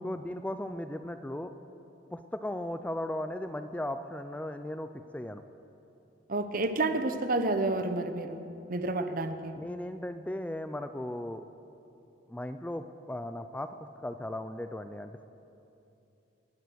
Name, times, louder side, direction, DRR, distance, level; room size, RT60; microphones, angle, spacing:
voice 1, 0.0-1.5 2.1-5.4 9.6-11.4 12.3-15.3, left 1 dB, 10° left, 9 dB, 0.3 m, -37 dB
voice 2, 6.3-8.4 8.7-9.5, right 2 dB, 50° right, 9 dB, 0.8 m, -30 dB
19.0 x 9.3 x 6.3 m, 2.8 s
head